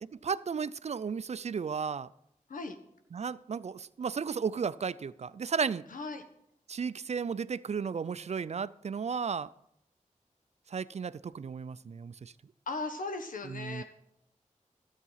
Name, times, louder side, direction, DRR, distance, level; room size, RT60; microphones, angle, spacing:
voice 1, 0.2-2.1 3.1-5.8 6.7-9.5 10.7-12.3 13.4-13.8, right 6 dB, 55° right, 17 dB, 0.4 m, -34 dB
voice 2, 5.9-6.2 12.7-13.8, left 3 dB, 80° left, 7 dB, 1.2 m, -37 dB
12.5 x 8.2 x 5.7 m, 0.77 s
wide cardioid pair, 65°, 14 cm